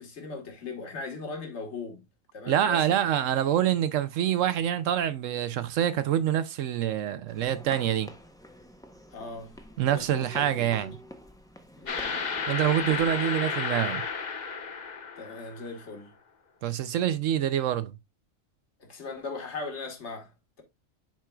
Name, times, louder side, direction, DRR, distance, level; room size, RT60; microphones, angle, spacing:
voice 1, 0.0-2.0 2.3-3.3 9.1-9.6 9.9-10.7 11.8-12.2 15.2-16.1 16.7-16.8 18.8-20.6, left 4 dB, 60° left, 1.8 m, -39 dB
voice 2, 2.5-8.1 9.8-11.0 12.5-14.0 16.6-17.9, right 10 dB, 75° right, 0.9 m, -26 dB
sound 1, 7.3-13.2, equal, 5° left, 0.5 m, -48 dB
sound 2, 11.9-15.8, left 5 dB, 40° left, 0.8 m, -32 dB
10.5 x 4.5 x 2.3 m
omnidirectional pair, 1.4 m